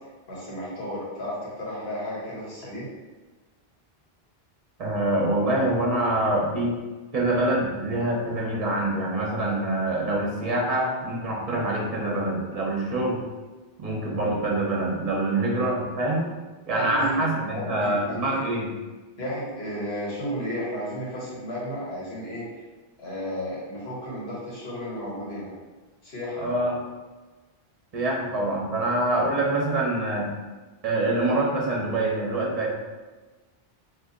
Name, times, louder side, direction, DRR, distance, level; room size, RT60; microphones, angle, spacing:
voice 1, 0.3-2.9 16.7-18.4 19.2-22.6 23.0-25.5 26.0-26.6, equal, 80° left, -6 dB, 1.3 m, -33 dB
voice 2, 4.8-6.8 7.1-13.2 13.8-16.3 16.7-18.7 26.4-26.8 27.9-30.3 30.8-32.8, right 1 dB, 40° right, -2 dB, 0.8 m, -25 dB
2.7 x 2.7 x 3.7 m, 1.2 s
omnidirectional pair, 1.0 m